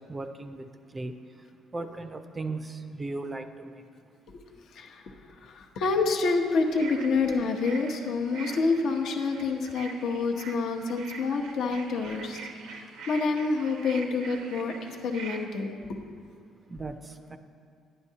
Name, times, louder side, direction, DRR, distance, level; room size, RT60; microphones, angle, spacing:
voice 1, 0.1-0.7 0.9-1.1 1.7-3.8 16.7-16.9 17.3-17.4, right 3 dB, 25° right, 8 dB, 0.4 m, -36 dB
voice 2, 4.7-5.1 5.4-12.4 12.7-15.8, left 4 dB, 70° left, 3 dB, 0.8 m, -28 dB
sound 1, 6.6-15.5, right 4 dB, 85° right, 0.6 m, -44 dB
10.5 x 9.4 x 2.8 m, 2.2 s
cardioid pair, 100°, 0 cm